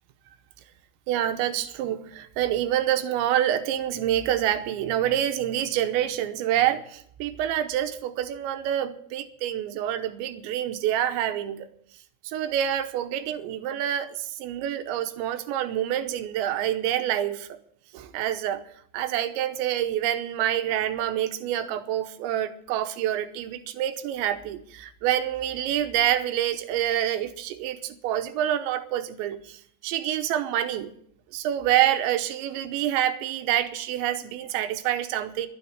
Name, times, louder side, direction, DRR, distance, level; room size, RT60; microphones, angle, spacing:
voice 1, 1.1-11.7 12.2-17.5 17.9-18.6 18.9-29.6 29.8-30.9 31.3-35.5, right 11 dB, 80° right, 10 dB, 2.9 m, -27 dB
12.0 x 9.7 x 9.4 m, 0.68 s
omnidirectional pair, 5.7 m